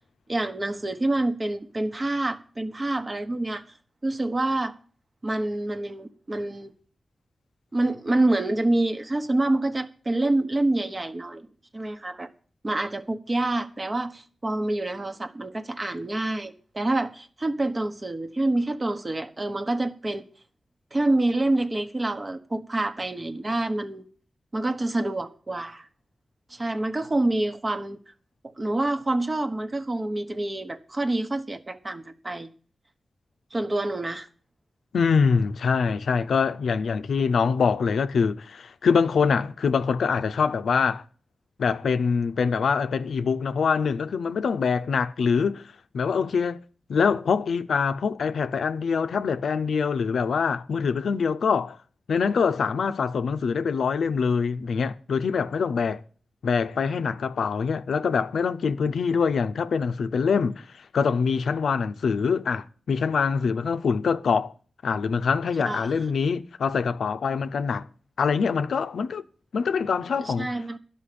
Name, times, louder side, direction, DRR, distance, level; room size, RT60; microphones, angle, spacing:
voice 1, 0.3-3.6 4.0-4.8 5.2-6.7 7.7-11.5 11.7-12.3 12.6-20.3 20.9-24.0 24.5-25.9 26.5-28.0 28.4-32.5 33.5-34.3 65.7-65.9 70.2-70.8, right 2 dB, 40° right, 1.1 m, -27 dB
voice 2, 34.9-41.0 41.6-45.6 45.9-46.6 46.9-51.8 52.1-56.0 56.4-64.5 64.8-67.9 68.2-69.2 69.5-70.5, left 5 dB, 85° left, 0.5 m, -24 dB
11.5 x 5.5 x 8.4 m
cardioid pair, 45°, 0 cm